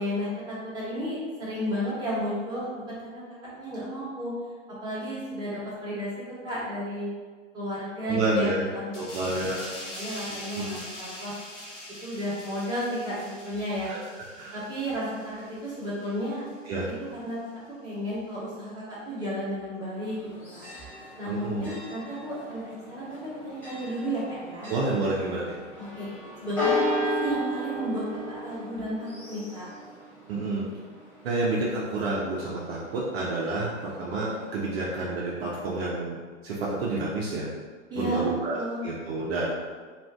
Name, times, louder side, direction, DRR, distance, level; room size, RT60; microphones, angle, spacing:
voice 1, 0.0-4.3 4.8-6.1 6.4-7.1 7.5-8.9 9.6-11.3 12.0-13.9 14.5-16.4 17.2-20.2 20.5-20.7 21.2-23.1 23.4-24.7 25.8-26.1 26.4-29.7 37.9-38.9, equal, 10° right, -9 dB, 1.0 m, -33 dB
voice 2, 8.0-8.6 8.9-9.6 10.3-10.8 13.8-14.0 14.4-14.6 16.7-16.9 21.2-21.7 24.7-25.5 30.3-30.6 31.2-36.2 36.4-37.5 38.0-39.5, right 2 dB, 50° right, -5 dB, 0.7 m, -29 dB
sound 1, 8.9-16.1 16.5-16.7, left 1 dB, 40° left, 1.1 m, -43 dB
Church bell, 20.0-35.1, left 1 dB, 5° left, 0.4 m, -35 dB
2.5 x 2.4 x 3.4 m, 1.5 s
figure-of-eight pair, 105°, 39 cm